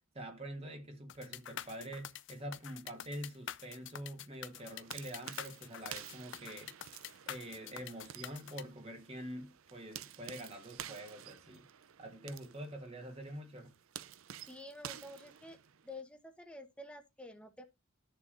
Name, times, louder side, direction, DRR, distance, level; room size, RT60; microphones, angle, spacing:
voice 1, 0.0-6.7 7.2-11.7 12.0-13.7, right 1 dB, 25° right, 1.6 m, -46 dB
sound 1, 1.1-8.6, left 10 dB, 55° left, 0.4 m, -46 dB
sound 2, 4.5-16.0, right 10 dB, 70° right, 0.5 m, -51 dB
voice 2, 14.5-15.6 15.8-17.6, left 1 dB, 5° left, 1.1 m, -49 dB
12.5 x 6.8 x 2.6 m
head